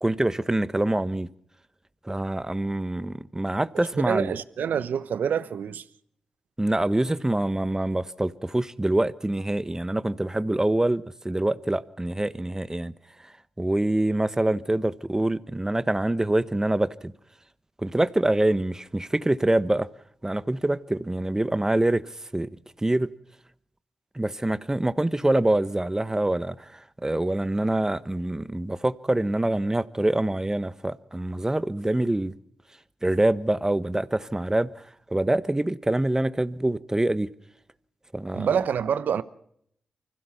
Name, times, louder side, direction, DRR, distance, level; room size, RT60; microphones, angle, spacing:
voice 1, 0.0-1.3 2.0-4.3 6.6-12.9 13.6-17.1 17.8-19.9 20.2-22.5 22.8-23.1 24.1-32.3 33.0-34.7 35.1-37.3 38.1-38.5, right 1 dB, 20° right, 1.2 m, -25 dB
voice 2, 3.9-5.8 38.3-39.2, right 7 dB, 75° right, 1.0 m, -26 dB
25.0 x 16.0 x 7.1 m
supercardioid pair, 40°, 3 cm